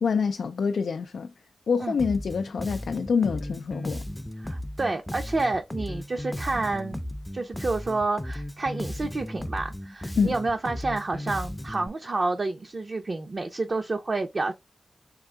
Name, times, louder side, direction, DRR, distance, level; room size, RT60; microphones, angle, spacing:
voice 1, 0.0-1.3 1.7-4.0 10.2-10.3, left 5 dB, 85° left, 0.3 m, -26 dB
Bass guitar, 2.0-11.9, left 1 dB, 15° left, 0.5 m, -36 dB
voice 2, 4.4-7.0 7.3-14.5, right 3 dB, 50° right, 0.6 m, -29 dB
3.7 x 3.4 x 3.2 m
cardioid pair, 65°, 0 cm